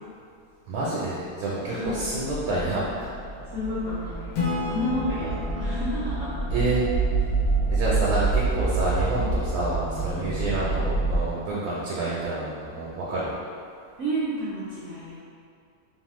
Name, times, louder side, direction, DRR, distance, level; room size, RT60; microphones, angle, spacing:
voice 1, 0.7-3.1 5.2-5.4 6.5-6.8 7.7-13.3, right 2 dB, 85° right, -6 dB, 1.1 m, -28 dB
voice 2, 1.7-2.2 3.5-4.2 4.5-6.3 14.0-15.2, equal, 65° right, -8 dB, 0.8 m, -31 dB
sound 1, 1.8-11.3, right 3 dB, 65° left, 0.8 m, -27 dB
Acoustic guitar / Strum, 4.3-7.9, left 4 dB, 85° left, 1.1 m, -34 dB
2.9 x 2.0 x 2.9 m, 2.3 s
omnidirectional pair, 1.6 m